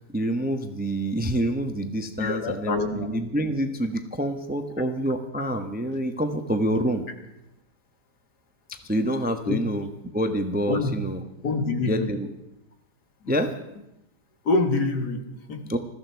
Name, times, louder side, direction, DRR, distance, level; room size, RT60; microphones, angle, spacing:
voice 1, 0.1-7.1 8.8-11.2 11.8-12.3 13.3-13.5 15.7-15.8, right 1 dB, 5° right, 6 dB, 0.8 m, -27 dB
voice 2, 2.2-3.1 9.5-9.6 10.7-10.9 11.4-12.2 13.2-13.3 14.4-15.7, left 3 dB, 70° left, 6 dB, 2.2 m, -26 dB
21.5 x 14.5 x 4.6 m, 0.88 s
omnidirectional pair, 1.8 m